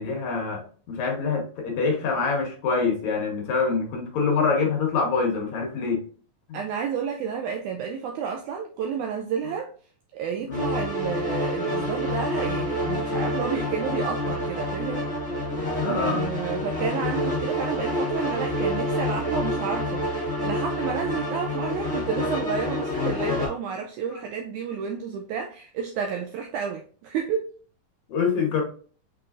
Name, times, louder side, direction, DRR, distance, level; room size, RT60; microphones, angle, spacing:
voice 1, 0.0-6.1 6.5-6.6 10.5-10.6 15.8-16.2 24.1-24.2 28.1-28.6, left 5 dB, 65° left, 2.2 m, -25 dB
voice 2, 6.5-9.7 10.1-15.5 15.8-27.5, right 7 dB, 85° right, 1.8 m, -31 dB
sound 1, 10.5-23.5, left 1 dB, 5° right, 0.7 m, -28 dB
5.7 x 3.8 x 2.4 m
omnidirectional pair, 4.0 m